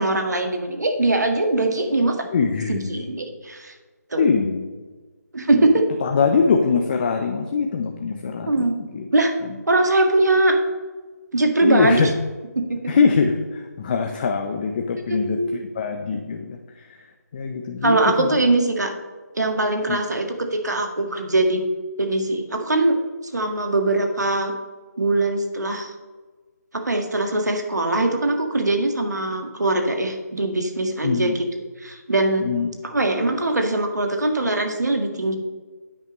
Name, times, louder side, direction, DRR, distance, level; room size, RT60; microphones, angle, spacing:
voice 1, 0.0-2.3 2.7-3.7 4.1-4.3 5.3-5.8 8.5-8.8 9.1-9.3 9.7-10.6 11.3-12.1 12.5-12.8 15.1-15.5 17.8-18.9 19.4-21.6 22.0-23.0 23.3-24.5 25.0-25.9 26.7-31.4 31.8-32.5 32.8-35.4, right 2 dB, 75° right, 4 dB, 1.7 m, -21 dB
voice 2, 2.3-3.0 4.2-4.7 5.5-5.7 6.0-9.1 9.4-9.6 11.6-12.1 12.9-18.4 19.9-20.0 31.0-31.3 32.4-32.7, left 5 dB, 30° left, 4 dB, 0.6 m, -23 dB
10.5 x 8.8 x 3.1 m, 1.3 s
figure-of-eight pair, 155°, 9 cm